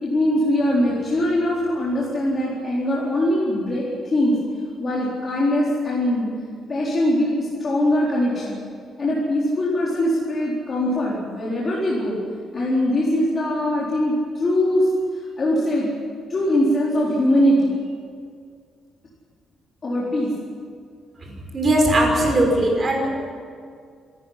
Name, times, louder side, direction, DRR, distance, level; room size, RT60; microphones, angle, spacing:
voice 1, 0.0-4.4 4.8-6.3 6.7-8.6 9.0-12.2 12.5-15.9 16.3-17.8 19.8-20.3, left 1 dB, 30° left, -6 dB, 4.2 m, -21 dB
voice 2, 21.2-23.3, right 1 dB, 25° right, 1 dB, 5.6 m, -20 dB
27.0 x 13.5 x 10.0 m, 2.2 s
cardioid pair, 160°, 0 cm